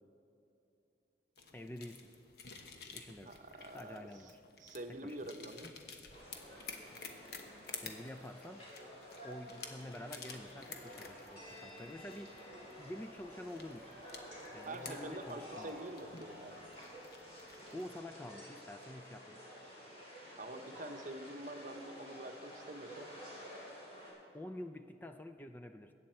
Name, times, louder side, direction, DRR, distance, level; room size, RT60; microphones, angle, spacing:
sound 1, 1.4-18.0, left 5 dB, 65° left, 1.1 m, -52 dB
voice 1, 1.5-2.1 2.9-3.3 3.7-4.4 4.9-5.3 7.8-8.7 9.2-12.4 12.8-14.0 14.5-15.8 17.7-19.4 24.3-25.9, left 1 dB, 10° left, 7 dB, 0.3 m, -48 dB
voice 2, 3.2-4.3 4.6-5.7 14.6-16.6 20.4-23.1, right 1 dB, 45° right, 7 dB, 0.8 m, -46 dB
sound 2, 6.1-24.1, equal, 35° left, 3.6 m, -51 dB
21.0 x 8.6 x 4.4 m, 2.8 s
head